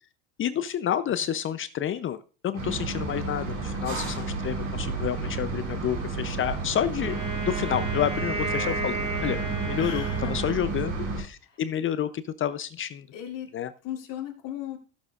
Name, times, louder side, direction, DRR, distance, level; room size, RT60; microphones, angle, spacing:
voice 1, 0.4-7.2 7.5-9.4 9.7-13.1 13.5-13.7, left 10 dB, 35° left, 13 dB, 0.6 m, -29 dB
sound 1, 2.5-11.2, right 4 dB, 85° right, 6.1 m, -31 dB
Wind instrument woodwind instrument, 7.0-11.2, right 3 dB, 15° right, 3.6 m, -33 dB
voice 2, 7.6-8.2 9.7-10.5 11.4-11.6 13.1-13.5 13.8-14.8, left 10 dB, 60° left, 1 dB, 3.6 m, -38 dB
16.0 x 8.2 x 2.5 m, 0.35 s
supercardioid pair, 95°, 35 cm